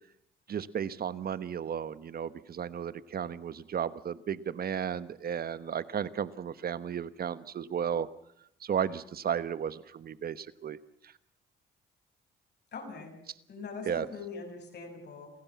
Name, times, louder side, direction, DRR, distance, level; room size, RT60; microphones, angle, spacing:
voice 1, 0.5-8.1 8.6-10.8 13.9-14.1, right 8 dB, 50° right, 15 dB, 1.1 m, -34 dB
voice 2, 12.7-13.2 13.5-15.3, left 4 dB, 55° left, 4 dB, 6.4 m, -42 dB
28.0 x 16.0 x 7.3 m, 0.74 s
cardioid pair, 90°, 20 cm